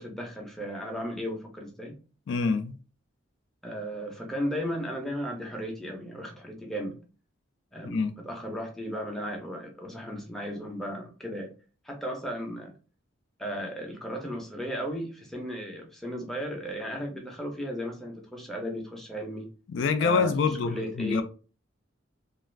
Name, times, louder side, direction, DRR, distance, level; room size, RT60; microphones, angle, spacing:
voice 1, 0.0-2.0 3.6-7.0 7.7-11.5 11.8-12.7 13.4-19.5 20.0-20.3 20.7-21.2, equal, ahead, 0.5 m, -35 dB
voice 2, 2.3-2.8 7.8-8.1 19.7-21.2, left 5 dB, 65° left, 0.3 m, -26 dB
2.4 x 2.3 x 3.1 m
head